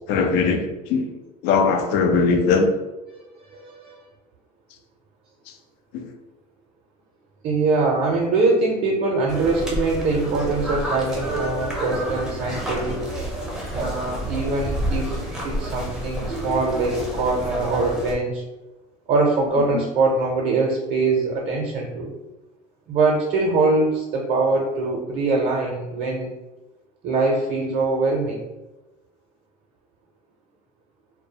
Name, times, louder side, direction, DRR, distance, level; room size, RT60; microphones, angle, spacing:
voice 1, 0.1-1.1 1.4-2.7 5.9-6.1 19.7-19.8, left 4 dB, 65° left, 5 dB, 0.4 m, -20 dB
voice 2, 3.5-4.0 7.4-13.0 13.7-18.4 19.1-22.1 22.9-26.3 27.0-28.5, right 3 dB, 50° right, -1 dB, 0.5 m, -23 dB
sound 1, 9.3-18.2, right 1 dB, 5° right, 0.5 m, -29 dB
2.2 x 2.0 x 2.7 m, 1.0 s
supercardioid pair, 115°, 18 cm